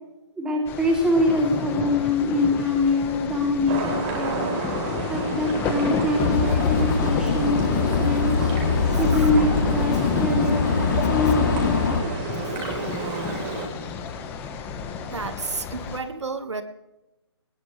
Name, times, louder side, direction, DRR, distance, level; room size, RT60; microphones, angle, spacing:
voice 1, 0.4-4.5 5.1-8.5 9.0-12.1, left 2 dB, 5° right, -1 dB, 3.3 m, -24 dB
sound 1, 0.7-16.0, left 6 dB, 15° left, 1.4 m, -32 dB
sound 2, 3.7-13.7, right 3 dB, 25° right, 4.5 m, -31 dB
sound 3, 6.2-12.0, left 5 dB, 40° left, 3.2 m, -23 dB
voice 2, 8.8-9.3 15.1-16.6, right 4 dB, 85° right, 8 dB, 2.0 m, -32 dB
21.0 x 20.0 x 3.4 m, 0.93 s
hypercardioid pair, 160°, 14 cm